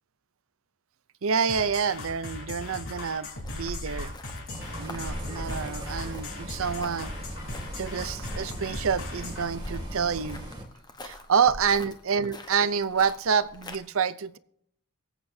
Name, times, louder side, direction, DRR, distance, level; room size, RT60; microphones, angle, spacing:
voice 1, 1.2-4.1 4.8-7.1 7.8-10.4 11.0-14.4, right 6 dB, 65° right, 16 dB, 0.6 m, -27 dB
sound 1, 1.5-9.5, left 3 dB, 65° left, 3.7 m, -39 dB
sound 2, 3.3-13.8, equal, 20° left, 1.0 m, -42 dB
Bus, 4.5-10.6, right 1 dB, 20° right, 2.0 m, -39 dB
24.0 x 8.3 x 2.7 m, 0.68 s
head